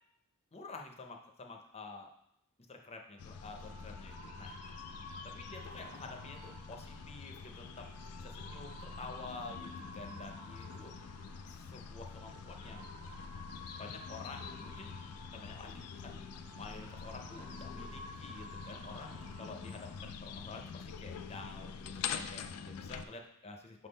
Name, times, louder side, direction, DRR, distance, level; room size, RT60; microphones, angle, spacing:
voice 1, 0.5-2.1 2.7-4.5 5.2-7.9 8.2-10.9 11.5-12.9 13.8-14.9 15.3-16.2 16.5-23.9, left 3 dB, 30° left, 3 dB, 0.7 m, -49 dB
sound 1, 3.0-20.0, left 1 dB, 20° right, 0.7 m, -53 dB
sound 2, 3.2-23.1, left 6 dB, 85° left, 0.4 m, -46 dB
6.2 x 3.7 x 4.0 m, 0.77 s
head